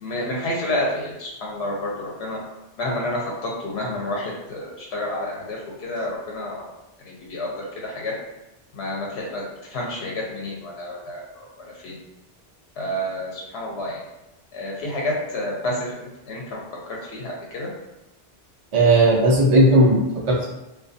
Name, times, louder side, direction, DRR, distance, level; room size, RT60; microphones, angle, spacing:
voice 1, 0.0-2.4 2.8-6.7 7.0-8.1 8.7-12.0 12.8-14.0 14.5-17.7, left 1 dB, 90° left, -3 dB, 0.8 m, -29 dB
voice 2, 18.7-20.5, right 1 dB, 40° right, -4 dB, 0.5 m, -16 dB
2.3 x 2.3 x 2.5 m, 0.96 s
omnidirectional pair, 1.0 m